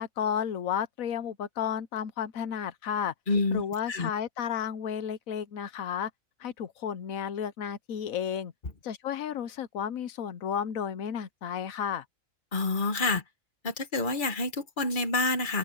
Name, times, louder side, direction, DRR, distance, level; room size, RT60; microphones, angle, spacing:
voice 1, 0.0-3.1 3.5-6.1 6.4-8.5 8.8-12.0, left 8 dB, 90° left, 1.3 m, -32 dB
voice 2, 3.3-3.6 3.9-4.1 12.5-13.2 13.6-15.6, left 3 dB, 35° left, 1.7 m, -27 dB
open air
omnidirectional pair, 1.4 m